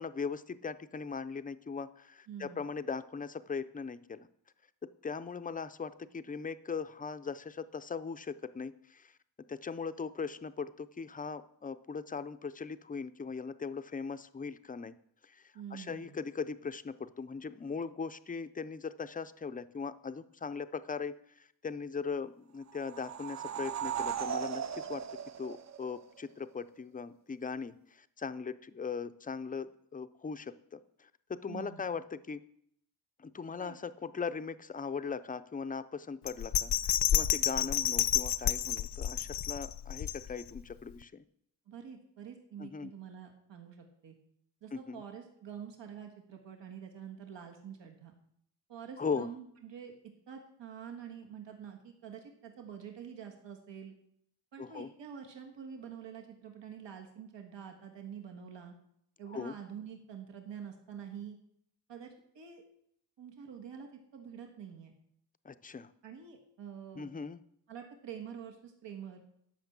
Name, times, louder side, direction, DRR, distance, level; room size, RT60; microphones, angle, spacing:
voice 1, 0.0-4.3 4.8-9.2 9.5-14.9 15.2-25.0 25.4-32.4 33.2-41.2 42.6-42.9 44.7-45.0 49.0-49.3 54.6-54.9 59.3-59.5 65.4-65.9 67.0-67.4, left 5 dB, 20° left, 13 dB, 0.4 m, -39 dB
voice 2, 2.3-2.7 15.5-16.1 31.5-31.9 33.6-33.8 41.7-44.1 44.6-48.1 48.7-49.9 50.3-53.9 54.5-58.7 59.2-61.4 61.9-62.1 62.3-62.6 63.2-64.9 66.0-67.1 67.7-69.2, right 8 dB, 85° right, 3 dB, 1.6 m, -47 dB
sound 1, 22.7-26.2, right 8 dB, 40° right, 0.4 m, -37 dB
Bell, 36.3-40.6 41.0-41.1, left 11 dB, 65° left, 0.6 m, -30 dB
11.5 x 6.1 x 7.3 m, 0.72 s
wide cardioid pair, 160°, 43 cm